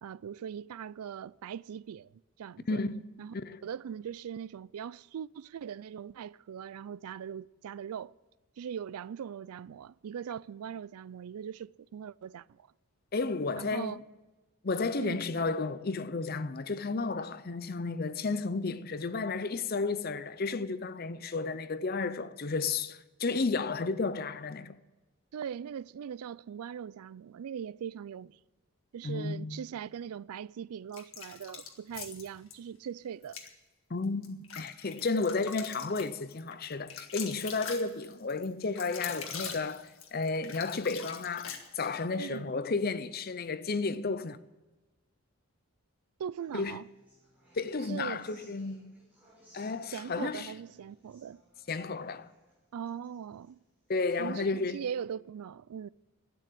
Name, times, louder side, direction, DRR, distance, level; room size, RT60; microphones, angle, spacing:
voice 1, 0.0-2.8 3.2-3.3 3.6-8.1 8.6-12.7 13.6-14.0 15.0-15.3 25.3-28.4 28.9-33.4 42.2-42.5 46.2-46.9 47.8-48.2 49.9-51.4 52.7-53.6 54.2-55.9, right 8 dB, 85° right, 0.3 m, -40 dB
voice 2, 2.7-3.0 3.3-3.6 13.1-14.0 14.6-24.8 29.0-29.6 33.9-44.4 46.5-46.8 47.5-48.9 49.5-50.5 51.7-52.3 53.9-54.8, left 3 dB, 40° left, 0.6 m, -32 dB
sound 1, 30.9-32.6 33.2-33.5 34.0-42.0, left 7 dB, 65° left, 1.7 m, -43 dB
Human voice / Acoustic guitar, 46.4-54.4, right 1 dB, 5° right, 5.7 m, -62 dB
12.5 x 9.2 x 9.9 m
head